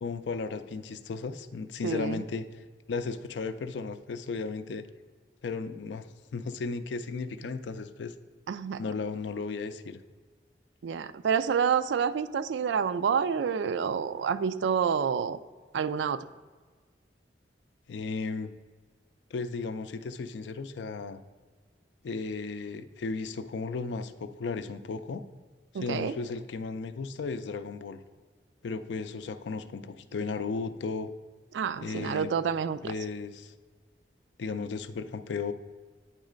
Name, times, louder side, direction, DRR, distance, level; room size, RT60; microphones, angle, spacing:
voice 1, 0.0-2.5 2.9-4.9 5.4-6.1 6.3-8.1 8.8-10.0 17.9-18.5 19.3-21.2 22.0-25.2 25.7-28.0 28.6-31.1 31.8-32.3 32.8-33.5 34.4-35.5, left 4 dB, 80° left, 11 dB, 0.4 m, -35 dB
voice 2, 1.8-2.2 8.5-8.8 10.8-15.4 15.7-16.3 25.7-26.1 31.5-32.9, right 7 dB, 85° right, 14 dB, 0.3 m, -28 dB
8.7 x 3.1 x 5.1 m, 1.5 s
head